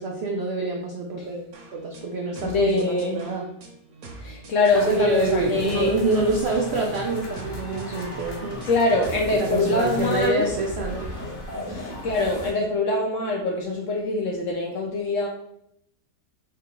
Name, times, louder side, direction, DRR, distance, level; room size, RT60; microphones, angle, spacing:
voice 1, 0.0-3.5 4.9-8.6 9.3-11.1 11.7-11.8, right 2 dB, 85° right, 0 dB, 0.5 m, -26 dB
sound 1, 1.5-9.9, right 2 dB, 65° right, 1.1 m, -44 dB
voice 2, 2.4-3.2 4.2-5.9 8.6-10.5 11.7-15.3, left 2 dB, 70° left, 1 dB, 0.7 m, -24 dB
sound 2, 4.7-12.5, left 1 dB, 40° left, 1.0 m, -35 dB
3.7 x 2.8 x 3.6 m, 0.76 s
omnidirectional pair, 1.8 m